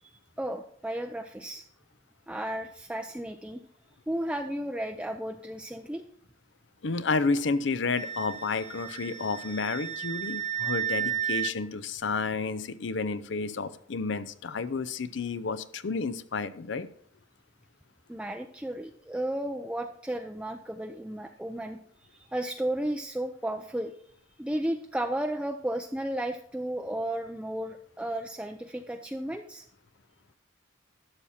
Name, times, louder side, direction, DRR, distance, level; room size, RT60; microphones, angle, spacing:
voice 1, 0.4-1.6 2.3-3.6 4.1-6.0 18.1-23.9 24.4-29.7, right 1 dB, 5° right, 5 dB, 0.4 m, -33 dB
voice 2, 6.8-16.9, left 4 dB, 70° left, 15 dB, 0.6 m, -31 dB
Wind instrument woodwind instrument, 8.0-11.5, right 9 dB, 25° left, 1.4 m, -33 dB
12.0 x 7.0 x 4.3 m, 0.64 s
head